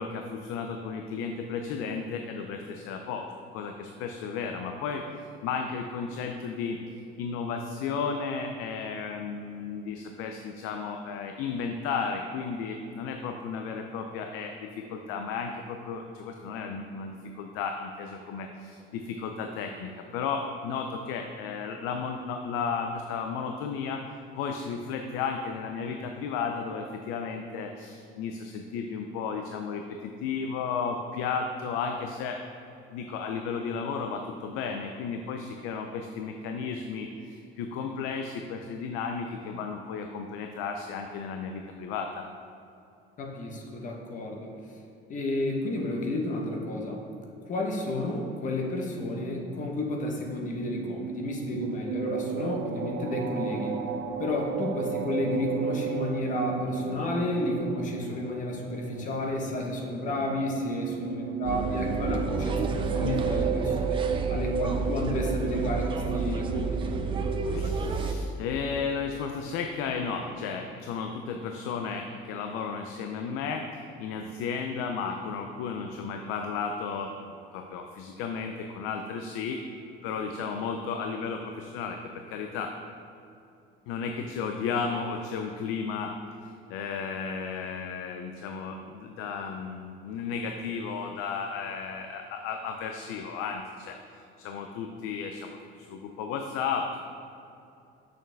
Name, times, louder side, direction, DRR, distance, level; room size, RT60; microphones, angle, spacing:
voice 1, 0.0-6.8 7.2-24.0 24.4-32.5 32.9-42.3 67.5-79.6 80.0-82.8 83.9-86.1 86.4-97.0, left 5 dB, 90° left, 5 dB, 0.5 m, -34 dB
voice 2, 43.2-44.5 45.1-47.0 47.4-53.8 54.2-64.0 64.3-67.0, left 1 dB, 40° left, 1 dB, 0.9 m, -31 dB
sound 1, 50.1-67.4, right 7 dB, 80° right, 0.5 m, -34 dB
sound 2, 61.4-68.1, right 4 dB, 25° right, 0.4 m, -30 dB
6.5 x 6.4 x 3.4 m, 2.6 s
cardioid pair, 155°, 21 cm